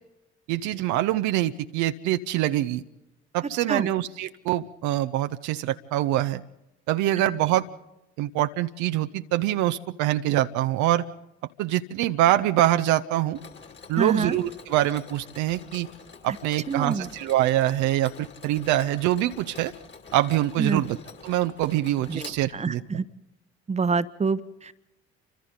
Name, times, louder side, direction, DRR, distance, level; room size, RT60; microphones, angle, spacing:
voice 1, 0.5-2.8 3.3-6.4 6.9-7.6 8.2-11.0 11.6-13.4 13.9-15.9 16.2-19.7 20.1-21.0 21.2-22.8, right 14 dB, 55° right, 9 dB, 0.9 m, -24 dB
Mechanisms, 13.3-22.9, left 5 dB, 30° left, 2.7 m, -47 dB
voice 2, 14.0-14.4 16.7-17.1 20.6-20.8 22.1-23.0 23.7-24.7, right 5 dB, 20° right, 12 dB, 1.1 m, -26 dB
29.0 x 25.5 x 4.0 m, 0.93 s
figure-of-eight pair, 55°, 35 cm